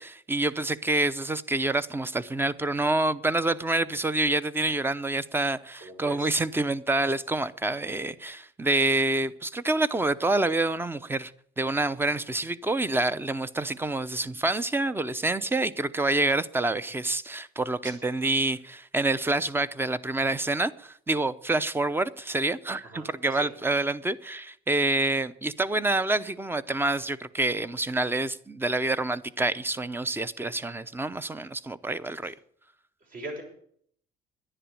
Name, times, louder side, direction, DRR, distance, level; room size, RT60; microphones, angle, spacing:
voice 1, 0.0-11.3 11.6-32.3, right 2 dB, 15° right, 0.7 m, -27 dB
voice 2, 5.8-6.3 17.8-17.9 22.8-23.1 23.4-23.5 33.1-33.4, right 2 dB, 55° right, 6.3 m, -39 dB
11.0 x 10.0 x 8.8 m
cardioid pair, 110°, 17 cm